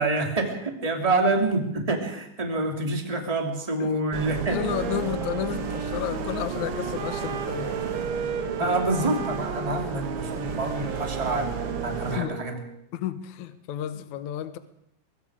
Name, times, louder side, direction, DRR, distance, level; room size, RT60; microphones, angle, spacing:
voice 1, 0.0-4.6 8.6-11.5 11.8-12.6, right 2 dB, 10° right, 2.2 m, -27 dB
sound 1, 4.1-12.2, right 5 dB, 70° right, 1.3 m, -33 dB
Wind instrument woodwind instrument, 4.4-12.9, right 8 dB, 90° right, 4.0 m, -35 dB
voice 2, 4.5-7.9 8.6-8.8 10.4-10.8 12.1-12.5 12.9-14.6, left 11 dB, 70° left, 1.8 m, -32 dB
23.0 x 23.0 x 5.0 m
omnidirectional pair, 5.2 m